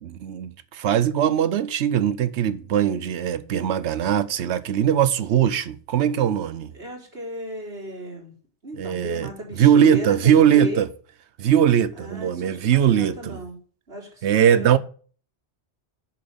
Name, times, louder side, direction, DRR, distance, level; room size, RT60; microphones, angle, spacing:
voice 1, 0.0-6.7 8.8-9.3 9.6-10.9 11.4-13.4 14.2-14.8, right 9 dB, 90° right, 1.0 m, -20 dB
voice 2, 6.5-8.3 8.6-10.9 12.0-13.6 13.9-14.8, right 1 dB, 65° right, 3.6 m, -36 dB
7.6 x 5.8 x 6.9 m
omnidirectional pair, 1.1 m